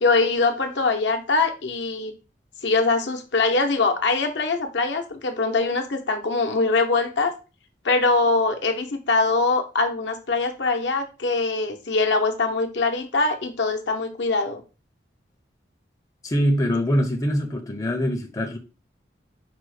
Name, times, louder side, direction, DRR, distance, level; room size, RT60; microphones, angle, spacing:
voice 1, 0.0-2.1 2.6-7.3 7.8-14.6, left 3 dB, 80° left, 0.7 m, -23 dB
voice 2, 16.2-18.6, equal, 20° left, 0.5 m, -23 dB
5.1 x 2.1 x 4.7 m
head